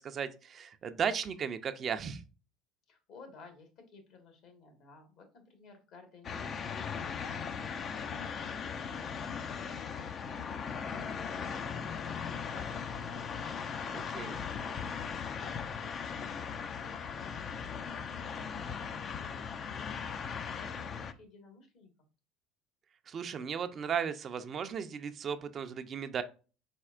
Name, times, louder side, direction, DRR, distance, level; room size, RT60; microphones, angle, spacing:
voice 1, 0.0-2.2 13.9-14.4 23.1-26.2, right 7 dB, 40° right, 8 dB, 0.5 m, -35 dB
voice 2, 2.9-13.5 13.7-21.9, left 3 dB, 60° left, 5 dB, 1.5 m, -56 dB
sound 1, 6.2-21.1, left 6 dB, 40° left, 0.5 m, -38 dB
4.3 x 4.1 x 2.4 m, 0.34 s
supercardioid pair, 85°, 0 cm